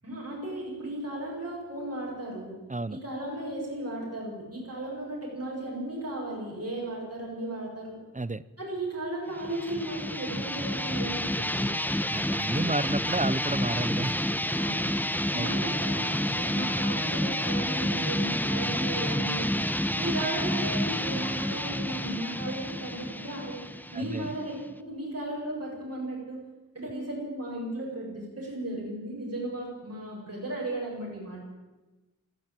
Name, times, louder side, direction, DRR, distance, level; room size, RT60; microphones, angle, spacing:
voice 1, 0.0-2.6 2.9-8.0 8.6-11.8 14.6-14.9 15.3-19.6 19.9-23.6 23.9-26.4 26.7-31.5, right 1 dB, 50° right, -4 dB, 7.6 m, -35 dB
sound 1, 9.4-24.8, left 1 dB, 5° left, 1.0 m, -29 dB
voice 2, 12.1-14.1 15.4-15.8 24.0-24.3, right 2 dB, 25° right, 17 dB, 0.8 m, -31 dB
20.5 x 15.5 x 9.0 m, 1.1 s
wide cardioid pair, 65°, 32 cm